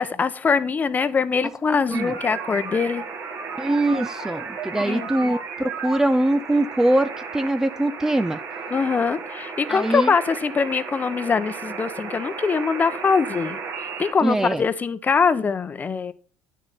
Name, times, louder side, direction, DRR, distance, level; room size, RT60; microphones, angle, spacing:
voice 1, 0.0-3.1 4.8-5.4 8.7-16.1, left 5 dB, 30° left, 13 dB, 0.8 m, -23 dB
sound 1, 1.9-14.1, right 5 dB, 55° right, 2.2 m, -34 dB
voice 2, 3.6-8.4 9.7-10.1 14.2-14.6, right 1 dB, 10° right, 11 dB, 0.5 m, -22 dB
9.6 x 6.6 x 4.2 m, 0.42 s
supercardioid pair, 95°, 6 cm